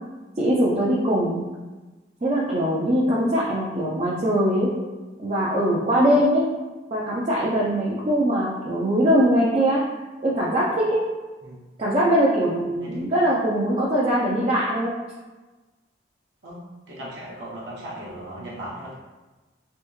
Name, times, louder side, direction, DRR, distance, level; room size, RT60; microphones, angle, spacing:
voice 1, 0.4-1.4 2.2-4.7 5.2-6.4 6.9-9.8 10.2-11.0 11.8-14.9, equal, 35° right, -7 dB, 0.4 m, -21 dB
voice 2, 12.6-13.0 16.4-16.6 16.9-18.9, right 1 dB, 60° right, -7 dB, 0.8 m, -37 dB
3.4 x 2.6 x 3.0 m, 1.2 s
head